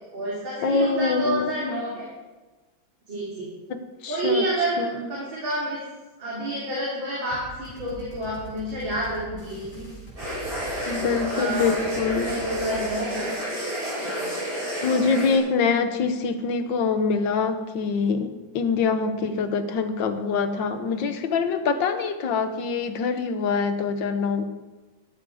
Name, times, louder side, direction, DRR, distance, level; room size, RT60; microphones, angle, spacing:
voice 1, 0.1-2.1 3.1-3.5 4.1-5.8 6.2-9.9 11.0-13.4 13.9-14.3 19.2-19.3, right 1 dB, 75° right, -6 dB, 4.0 m, -29 dB
voice 2, 0.6-1.9 3.7-4.5 4.8-5.1 10.9-12.4 14.8-24.4, left 5 dB, 70° left, 8 dB, 1.7 m, -25 dB
sound 1, 7.3-12.9, right 4 dB, 25° left, 4.3 m, -42 dB
sound 2, 10.2-15.4, equal, 45° right, 5.9 m, -30 dB
13.0 x 12.0 x 4.9 m, 1.2 s
omnidirectional pair, 2.1 m